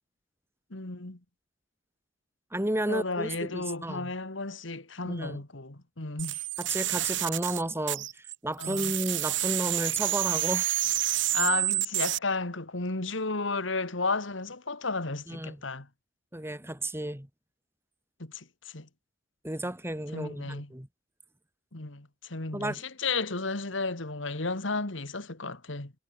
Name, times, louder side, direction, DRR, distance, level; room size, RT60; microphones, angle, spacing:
voice 1, 0.7-1.2 2.9-6.5 8.6-8.9 11.3-15.9 18.2-18.9 20.1-20.7 21.7-25.9, left 3 dB, 75° left, 2.3 m, -33 dB
voice 2, 2.5-4.1 5.1-5.4 6.6-10.7 15.3-15.6 16.3-17.3 19.4-20.9 22.5-22.8, right 1 dB, 15° right, 3.0 m, -32 dB
sound 1, 6.2-8.3 8.6-12.2, right 14 dB, 70° right, 1.4 m, -29 dB
head